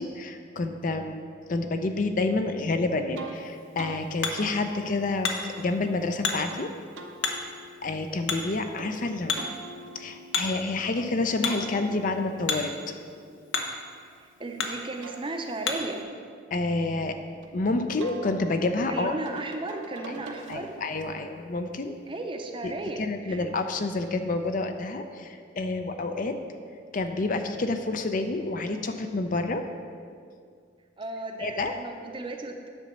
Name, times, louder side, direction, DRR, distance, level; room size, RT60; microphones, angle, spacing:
voice 1, 0.0-6.7 7.8-9.4 9.9-12.7 16.5-17.2 17.5-19.2 20.5-22.0 22.6-22.7 23.0-26.4 26.9-29.6 31.4-31.7, left 3 dB, 45° left, 7 dB, 0.5 m, -29 dB
sound 1, 3.2-3.4 3.8-4.0 4.4-6.6 6.9-8.9 9.4-11.1 11.5-14.4 14.8-17.5 18.0-21.0, right 3 dB, 75° right, 0.8 m, -46 dB
Hammer, 3.4-16.0, left 4 dB, 70° left, 0.8 m, -35 dB
voice 2, 14.2-16.0 18.9-20.8 22.1-23.4 31.0-32.7, right 2 dB, 25° right, 4 dB, 0.6 m, -35 dB
9.3 x 4.0 x 6.8 m, 2.2 s
head